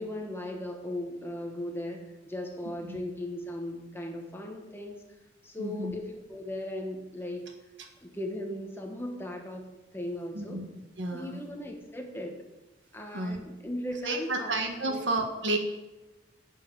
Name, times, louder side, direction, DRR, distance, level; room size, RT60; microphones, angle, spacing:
voice 1, 0.0-5.0 5.4-7.5 8.0-9.6 9.9-10.6 11.1-12.4 12.9-14.5 14.9-15.0, left 1 dB, 10° left, 2 dB, 1.3 m, -37 dB
voice 2, 5.6-5.9 10.3-10.6 11.0-11.4 13.1-13.4 14.0-15.6, right 2 dB, 65° right, 5 dB, 1.5 m, -31 dB
11.0 x 5.4 x 8.1 m, 1.0 s
head